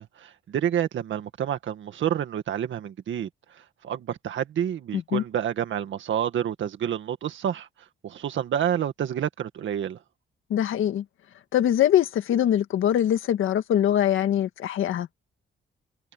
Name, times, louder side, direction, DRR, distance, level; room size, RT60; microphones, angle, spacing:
voice 1, 0.0-3.3 3.6-7.7 8.0-10.0, right 9 dB, 75° right, 1.9 m, -29 dB
voice 2, 4.9-5.2 10.5-11.0 11.5-15.1, left 11 dB, 85° left, 1.8 m, -23 dB
cardioid pair, 110°, 20 cm